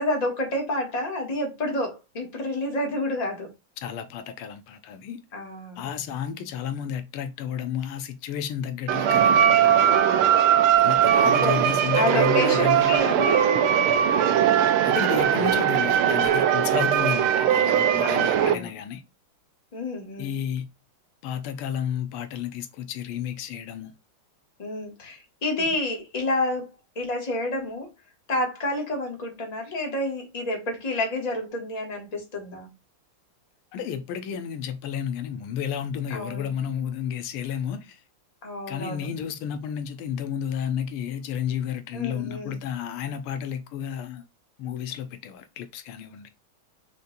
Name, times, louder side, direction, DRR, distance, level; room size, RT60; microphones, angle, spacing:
voice 1, 0.0-3.5 5.3-5.8 9.6-10.4 11.2-11.6 11.9-14.1 14.4-14.9 18.0-18.7 19.7-20.4 24.6-27.9 28.3-32.7 36.1-36.6 38.4-39.1 41.9-42.6, left 1 dB, 20° left, 1.3 m, -29 dB
voice 2, 3.8-5.2 5.8-10.0 10.8-13.0 14.8-19.0 20.2-20.7 21.2-23.9 25.6-25.7 33.7-38.0 38.7-44.2 44.6-46.3, left 8 dB, 85° left, 1.5 m, -32 dB
sound 1, 8.9-18.6, right 9 dB, 85° right, 1.5 m, -20 dB
5.3 x 2.6 x 3.9 m
omnidirectional pair, 2.4 m